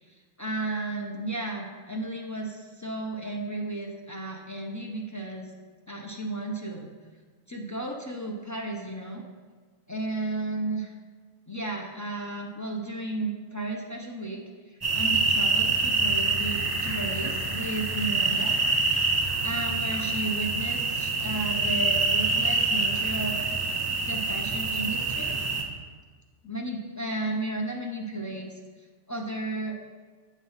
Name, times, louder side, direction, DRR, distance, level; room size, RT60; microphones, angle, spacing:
voice 1, 0.0-5.5 5.9-6.9 7.5-9.3 9.9-10.9 11.5-18.6 19.4-23.5 24.0-25.4 26.4-28.6 29.1-29.7, right 2 dB, 25° left, 0 dB, 0.4 m, -33 dB
sound 1, 14.8-25.6, right 3 dB, 25° right, 0.7 m, -26 dB
8.6 x 3.1 x 5.5 m, 1.5 s
omnidirectional pair, 1.2 m